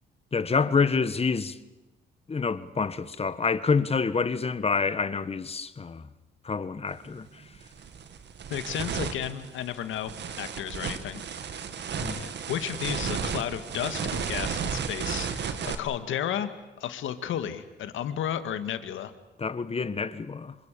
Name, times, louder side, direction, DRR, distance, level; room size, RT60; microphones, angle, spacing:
voice 1, 0.3-1.6 2.3-6.1 6.4-7.4 12.0-12.3 19.4-20.5, left 5 dB, 30° left, 1.5 m, -27 dB
sound 1, 6.9-7.1 7.5-15.8, right 6 dB, 60° right, 2.0 m, -33 dB
voice 2, 8.5-11.2 12.1-16.5 16.8-19.1, left 10 dB, 80° left, 2.1 m, -33 dB
26.5 x 25.0 x 7.0 m
cardioid pair, 90°, 20 cm